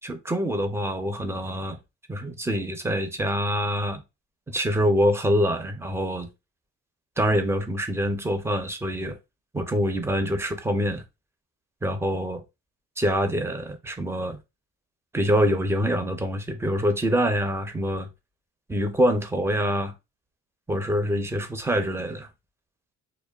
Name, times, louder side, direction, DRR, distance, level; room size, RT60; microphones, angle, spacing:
voice 1, 0.0-1.8 2.1-4.0 4.5-6.3 7.2-9.2 9.5-11.0 11.8-12.4 13.0-14.4 15.1-18.1 18.7-19.9 20.7-22.3, equal, 10° right, 0.5 m, -25 dB
2.9 x 2.1 x 2.2 m
cardioid pair, 90°, 30 cm